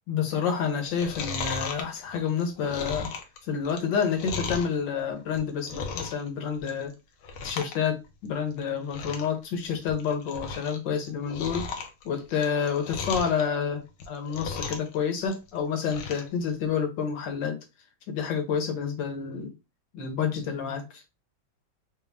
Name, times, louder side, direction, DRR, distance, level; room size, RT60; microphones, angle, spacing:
voice 1, 0.1-3.1 3.5-6.9 7.4-11.7 12.0-17.6 18.1-19.5 19.9-21.0, left 7 dB, 70° left, 1.7 m, -29 dB
Chewing mastication, 0.8-4.8 5.2-6.3 6.5-6.9 7.2-7.8 8.0-8.1 8.6-8.7 8.9-9.3 9.7-10.8 11.0-13.4 13.9-14.9 15.2-16.3 16.7-16.8, left 5 dB, 90° left, 1.7 m, -36 dB
5.2 x 2.6 x 3.5 m
omnidirectional pair, 2.2 m